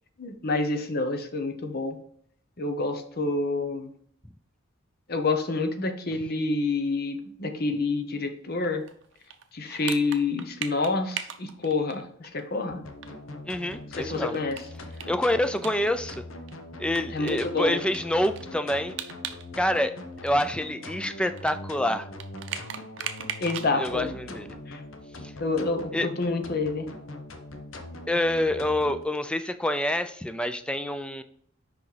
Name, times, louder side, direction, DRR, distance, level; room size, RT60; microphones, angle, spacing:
voice 1, 0.2-2.0 2.6-3.9 5.1-8.8 9.5-12.8 13.9-14.6 17.1-17.8 23.4-24.3 24.7-24.8 25.4-26.9, left 3 dB, 50° left, 6 dB, 0.8 m, -28 dB
sound 1, 8.6-12.4 12.7-12.8 13.0-13.1 13.5-16.2 16.5-16.6 17.0-19.5 19.7-23.7, right 9 dB, 65° right, 0.6 m, -38 dB
sound 2, 12.7-29.0, left 2 dB, 90° left, 0.9 m, -42 dB
voice 2, 13.5-14.4 15.1-16.2 16.8-19.0 19.6-19.9 20.2-22.1 23.8-24.5 25.9-26.1 28.1-31.2, left 1 dB, 5° left, 10 dB, 0.4 m, -27 dB
5.8 x 5.2 x 3.3 m, 0.63 s
head